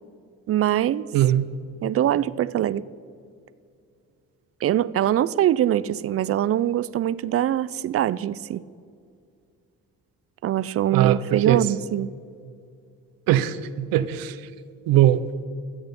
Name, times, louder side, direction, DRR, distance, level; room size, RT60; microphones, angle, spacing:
voice 1, 0.5-1.1 1.8-2.8 4.6-8.6 10.4-12.1, right 12 dB, 45° right, 19 dB, 0.4 m, -23 dB
voice 2, 1.1-1.5 10.9-11.6 13.3-14.4 14.9-15.2, right 12 dB, 80° right, 15 dB, 0.6 m, -20 dB
14.0 x 8.0 x 5.3 m, 2.3 s
supercardioid pair, 75°, 34 cm